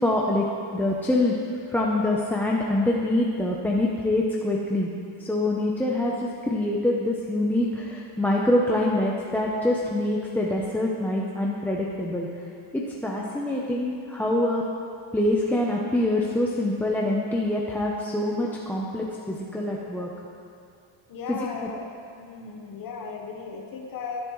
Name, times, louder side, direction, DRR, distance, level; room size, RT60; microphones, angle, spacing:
voice 1, 0.0-0.5 0.7-1.3 1.7-4.9 5.2-12.3 12.7-14.6 15.1-20.1 21.3-21.4, left 1 dB, 5° left, -3 dB, 0.7 m, -25 dB
voice 2, 21.1-21.9 22.2-24.2, left 5 dB, 45° left, 1 dB, 1.2 m, -36 dB
19.0 x 10.5 x 3.2 m, 2.4 s
cardioid pair, 150°, 47 cm